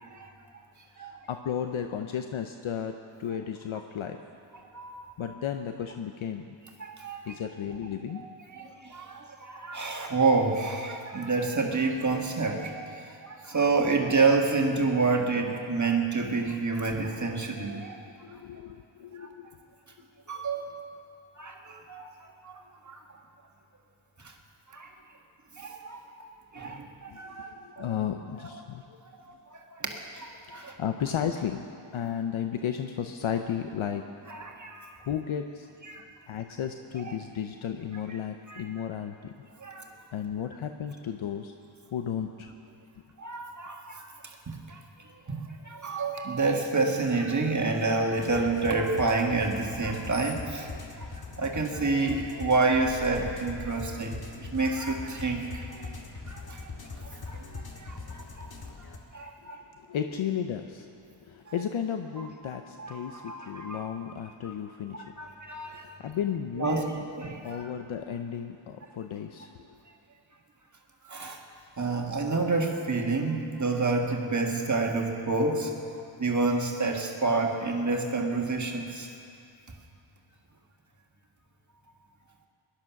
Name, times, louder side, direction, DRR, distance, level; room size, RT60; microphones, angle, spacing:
voice 1, 0.9-2.9 3.2-4.2 5.2-6.6 7.3-8.2 8.6-8.7 17.7-17.9 18.2-19.6 20.3-20.4 27.1-29.0 30.5-31.7 31.9-34.0 35.0-35.7 36.3-39.3 40.1-41.5 41.9-42.5 59.4-59.5 59.8-60.9 61.2-65.1 65.6-67.1 67.4-69.7, left 8 dB, 75° left, 6 dB, 0.8 m, -34 dB
voice 2, 4.7-5.1 6.8-7.3 8.1-8.3 8.5-12.9 13.2-18.0 19.2-19.3 20.3-20.8 21.4-23.0 24.2-24.3 24.7-24.9 25.6-27.8 29.3-30.8 34.3-35.0 35.9-36.0 37.0-37.1 38.5-38.6 39.6-39.9 43.2-44.8 45.3-50.7 51.0-51.1 51.4-55.9 56.3-56.7 57.0-58.5 59.1-59.6 62.2-62.3 62.8-63.9 64.4-64.5 64.9-66.0 66.6-67.7 71.1-71.4 71.8-75.7 76.2-79.1, right 3 dB, 35° right, 1 dB, 1.8 m, -29 dB
sound 1, 48.2-59.0, left 3 dB, 50° left, 1.9 m, -41 dB
19.0 x 12.0 x 5.9 m, 2.5 s
wide cardioid pair, 85°, 49 cm